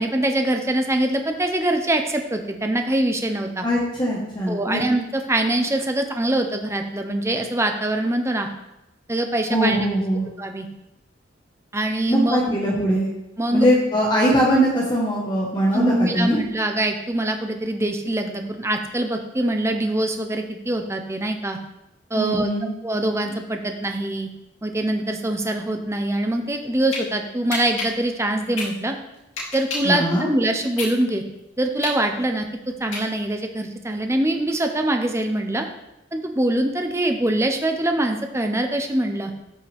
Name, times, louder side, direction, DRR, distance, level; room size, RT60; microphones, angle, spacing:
voice 1, 0.0-3.7 4.5-8.5 9.1-9.8 10.4-10.7 11.7-12.6 13.4-13.7 15.7-21.6 22.1-22.5 22.8-24.3 24.6-28.9 29.5-31.2 31.6-32.5 32.8-35.7 36.1-39.3, right 1 dB, 15° right, 5 dB, 0.8 m, -23 dB
voice 2, 3.6-4.8 9.5-10.3 12.1-13.1 13.5-16.4 22.1-22.7 29.8-30.3, equal, 25° left, -3 dB, 1.4 m, -21 dB
sound 1, 26.6-27.0 27.5-30.0 30.4-33.4, left 3 dB, 85° left, 2.8 m, -31 dB
13.0 x 5.7 x 3.5 m, 0.90 s
head